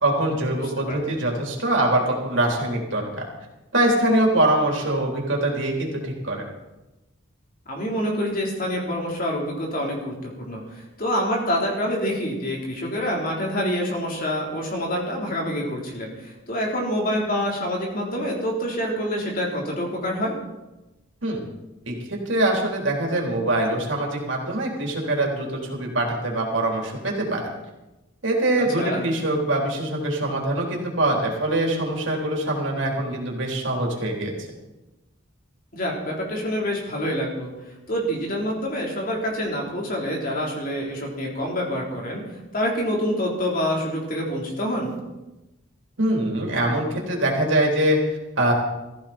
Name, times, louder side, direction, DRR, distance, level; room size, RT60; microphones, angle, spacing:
voice 1, 0.0-3.3 3.7-6.5 21.2-21.4 21.9-27.5 28.2-34.3 46.0-48.5, right 1 dB, 60° right, -1 dB, 3.7 m, -23 dB
voice 2, 7.7-20.3 28.8-29.0 35.7-37.5 37.9-42.2 42.5-44.9, equal, 40° left, -2 dB, 3.9 m, -26 dB
17.5 x 15.0 x 4.4 m, 1.0 s
head